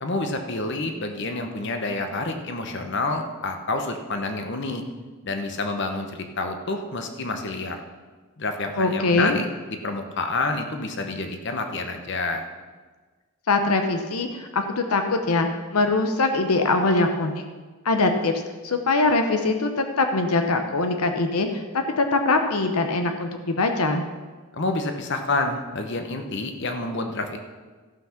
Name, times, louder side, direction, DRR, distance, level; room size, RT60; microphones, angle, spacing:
voice 1, 0.0-4.8 5.2-7.8 8.4-12.4 24.5-27.4, left 2 dB, 50° left, 5 dB, 1.0 m, -28 dB
voice 2, 8.8-9.4 13.5-17.4 17.8-18.3 18.6-21.5 21.7-24.0, left 3 dB, 80° left, 6 dB, 0.8 m, -22 dB
15.0 x 5.9 x 5.8 m, 1.4 s
head